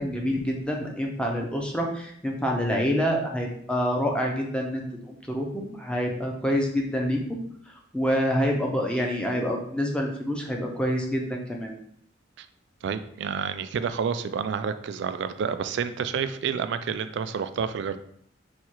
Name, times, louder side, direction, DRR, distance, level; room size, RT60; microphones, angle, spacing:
voice 1, 0.0-7.4 7.9-11.7, equal, 5° left, 0 dB, 0.6 m, -27 dB
voice 2, 12.8-18.0, right 6 dB, 60° right, 11 dB, 0.3 m, -29 dB
4.2 x 2.4 x 4.5 m, 0.68 s
head